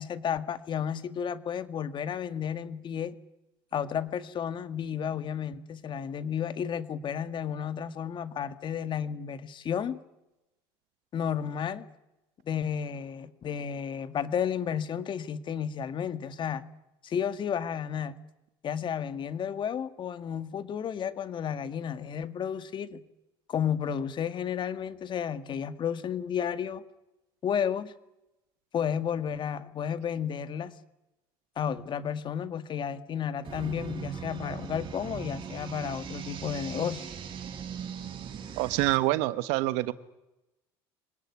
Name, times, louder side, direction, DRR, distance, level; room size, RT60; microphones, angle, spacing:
voice 1, 0.0-3.2 3.7-10.0 11.1-11.9 12.5-16.7 17.0-18.2 18.6-23.0 23.5-26.8 27.4-27.9 28.7-30.7 31.6-37.1, left 8 dB, 40° left, 12 dB, 2.0 m, -32 dB
sound 1, 33.4-39.0, right 7 dB, 45° right, 6.1 m, -39 dB
voice 2, 38.6-39.9, right 18 dB, 80° right, 14 dB, 1.4 m, -26 dB
26.5 x 19.0 x 9.8 m, 0.93 s
supercardioid pair, 100°, 12 cm